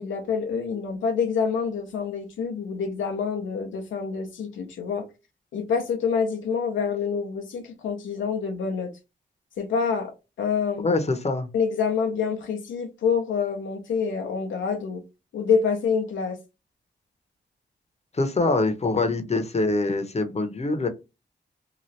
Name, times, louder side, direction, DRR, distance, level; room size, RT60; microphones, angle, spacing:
voice 1, 0.0-5.0 5.5-8.9 9.6-10.9 11.5-15.0 15.3-16.4, left 6 dB, 85° left, 0.6 m, -27 dB
voice 2, 10.8-11.5 18.1-20.9, left 2 dB, 35° left, 0.8 m, -24 dB
2.9 x 2.4 x 3.1 m
supercardioid pair, 45°, 19 cm